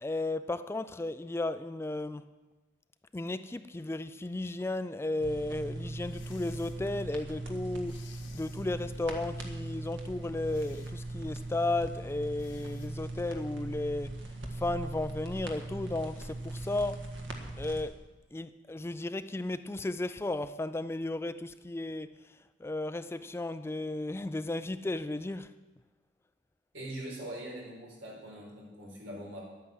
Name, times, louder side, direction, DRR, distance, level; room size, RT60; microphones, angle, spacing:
voice 1, 0.0-2.3 3.1-8.0 8.3-14.2 14.5-17.1 17.6-18.0 18.3-22.1 22.6-25.5, left 2 dB, 15° left, 0.3 m, -34 dB
sound 1, 5.2-17.8, right 2 dB, 70° right, 1.7 m, -40 dB
sound 2, 6.0-6.8 7.8-8.7 10.4-11.0 12.4-12.9, left 7 dB, 75° left, 1.3 m, -56 dB
voice 2, 26.7-29.4, right 1 dB, 90° right, 4.5 m, -42 dB
11.0 x 9.1 x 7.9 m
head